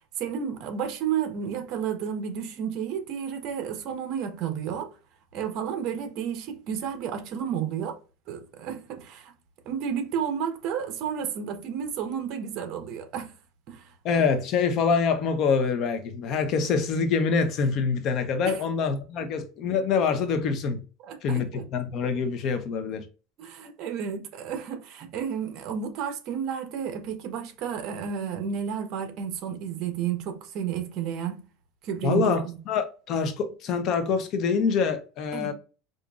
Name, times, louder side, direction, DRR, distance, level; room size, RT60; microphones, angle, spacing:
voice 1, 0.2-5.0 5.3-8.0 8.3-9.3 9.6-13.3 13.7-13.9 18.4-18.6 21.0-21.6 23.4-31.5 31.8-32.6 35.3-35.5, right 8 dB, 45° right, 0.9 m, -32 dB
voice 2, 14.0-20.8 21.2-23.0 32.0-35.5, left 5 dB, 40° left, 0.6 m, -25 dB
4.9 x 2.5 x 2.3 m
supercardioid pair, 150°, 0 cm